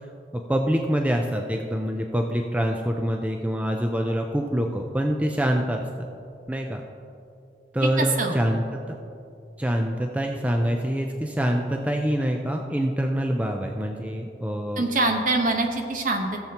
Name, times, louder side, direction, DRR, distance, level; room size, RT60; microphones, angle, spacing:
voice 1, 0.3-6.1 6.5-6.8 7.7-8.6 9.6-14.8, equal, 10° right, 2 dB, 0.5 m, -25 dB
voice 2, 7.8-8.4 14.8-16.4, right 2 dB, 50° right, 3 dB, 1.0 m, -24 dB
17.0 x 7.1 x 2.9 m, 2.5 s
head